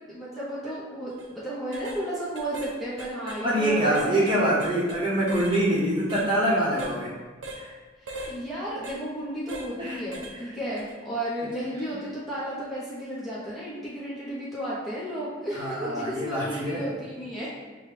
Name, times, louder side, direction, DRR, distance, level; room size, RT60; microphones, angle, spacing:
voice 1, 0.1-4.5 8.0-17.5, equal, ahead, -10 dB, 0.8 m, -33 dB
sound 1, 1.1-1.3 1.7-2.0 2.4-2.7 3.0-5.0 5.3-5.6 6.1-6.3 6.8-7.0 7.4-7.6 8.1-8.3 8.8-9.0 9.5-9.7 10.1-10.4 10.8-10.9, right 1 dB, 90° right, 0.6 m, -39 dB
voice 2, 3.4-7.1 7.6-7.7 9.8-10.0 15.5-16.9, right 1 dB, 25° right, -7 dB, 1.0 m, -25 dB
6.4 x 2.2 x 3.3 m, 1.3 s
head